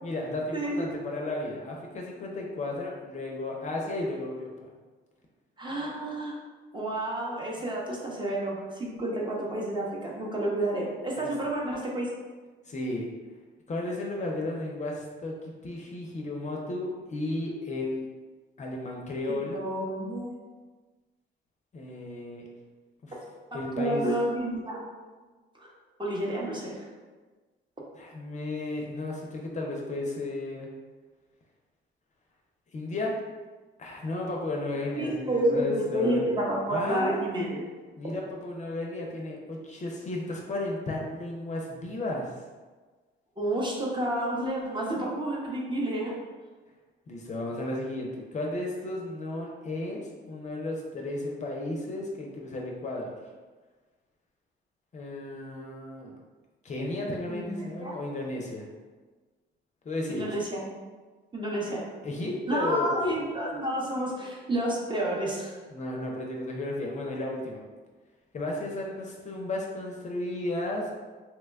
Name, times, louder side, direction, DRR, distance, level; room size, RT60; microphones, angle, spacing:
voice 1, 0.0-4.7 11.2-11.3 12.7-13.1 13.7-18.1 18.6-19.6 21.7-22.5 23.0-23.1 23.5-24.0 27.9-30.7 32.7-33.1 33.8-36.2 36.7-37.2 38.0-42.4 47.1-50.0 50.3-53.2 54.9-56.1 56.6-58.7 59.8-60.3 62.0-63.1 65.7-67.6 68.3-70.9, left 2 dB, 35° left, -1 dB, 0.5 m, -34 dB
voice 2, 0.5-0.9 5.6-6.3 6.7-12.1 19.5-20.4 23.5-24.8 25.6-25.7 26.0-26.9 35.0-37.6 43.4-46.1 57.3-57.9 60.1-60.7 61.3-61.9 62.5-65.6, right 1 dB, 25° right, -3 dB, 0.8 m, -30 dB
2.9 x 2.1 x 3.4 m, 1.4 s
cardioid pair, 90°, 20 cm